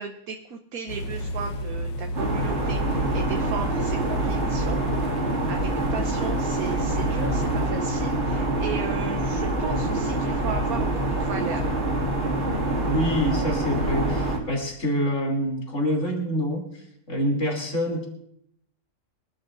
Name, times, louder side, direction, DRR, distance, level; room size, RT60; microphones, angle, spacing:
voice 1, 0.0-4.8 5.5-11.8, right 6 dB, 65° right, 4 dB, 1.3 m, -35 dB
sound 1, 0.9-7.7, left 1 dB, 90° left, 1.7 m, -33 dB
sound 2, 2.1-14.4, right 2 dB, 45° right, 2.7 m, -26 dB
voice 2, 12.8-18.1, equal, 50° left, 1 dB, 3.5 m, -26 dB
24.0 x 12.5 x 2.6 m, 0.72 s
omnidirectional pair, 1.7 m